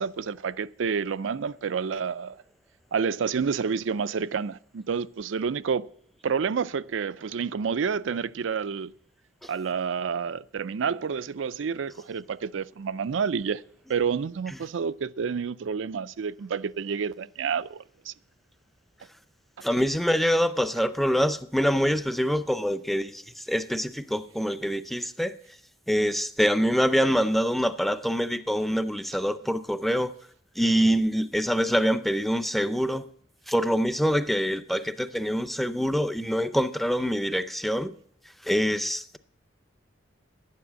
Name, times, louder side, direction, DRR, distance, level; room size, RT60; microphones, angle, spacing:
voice 1, 0.0-2.4 2.9-5.9 6.2-8.9 9.5-13.6 13.9-18.1, right 6 dB, 90° right, 0.4 m, -29 dB
voice 2, 19.6-25.3 25.9-30.1 30.6-33.1 33.5-37.9 38.4-39.2, equal, ahead, 0.5 m, -25 dB
12.0 x 9.7 x 7.4 m
head